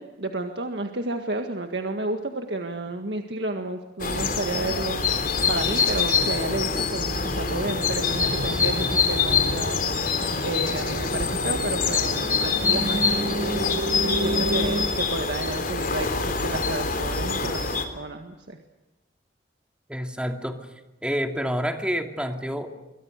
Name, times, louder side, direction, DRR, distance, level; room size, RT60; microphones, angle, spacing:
voice 1, 0.0-5.0 5.5-9.8 10.4-13.2 13.5-13.6 14.0-18.6, right 2 dB, 70° right, 5 dB, 1.8 m, -31 dB
sound 1, 4.0-17.8, left 5 dB, 50° left, 3.5 m, -25 dB
sound 2, 5.0-14.8, right 1 dB, 35° right, 2.5 m, -33 dB
voice 2, 19.9-20.6 21.0-22.7, equal, 5° right, 5 dB, 2.6 m, -28 dB
27.5 x 24.0 x 6.6 m, 1.1 s
head